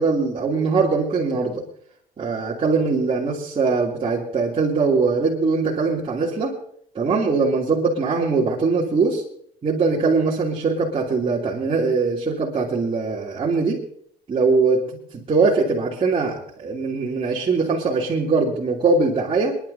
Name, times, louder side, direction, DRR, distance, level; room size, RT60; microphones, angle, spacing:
voice 1, 0.0-1.6 2.2-6.5 6.9-9.2 9.6-13.8 14.3-14.8 15.1-19.6, right 4 dB, 40° right, -5 dB, 2.9 m, -21 dB
27.0 x 11.0 x 2.8 m, 0.65 s
cardioid pair, 90°, 15 cm